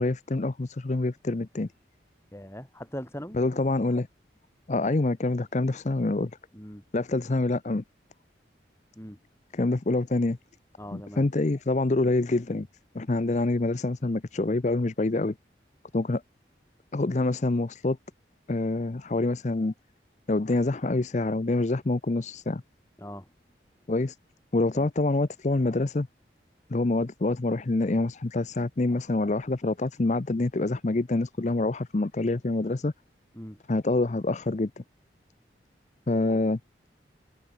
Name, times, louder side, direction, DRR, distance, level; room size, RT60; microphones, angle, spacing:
voice 1, 0.0-1.7 3.3-4.1 4.7-6.3 6.9-7.8 9.5-10.4 10.9-12.7 12.9-15.3 15.9-16.2 16.9-18.0 18.5-19.7 20.3-22.6 23.9-24.2 24.5-26.1 26.7-32.9 33.7-34.8 36.1-36.6, left 2 dB, 40° left, 0.6 m, -26 dB
voice 2, 2.3-3.4 6.5-6.8 9.0-9.2 10.8-11.3 23.0-23.3 24.7-24.9 33.3-33.6, equal, 15° left, 4.3 m, -40 dB
head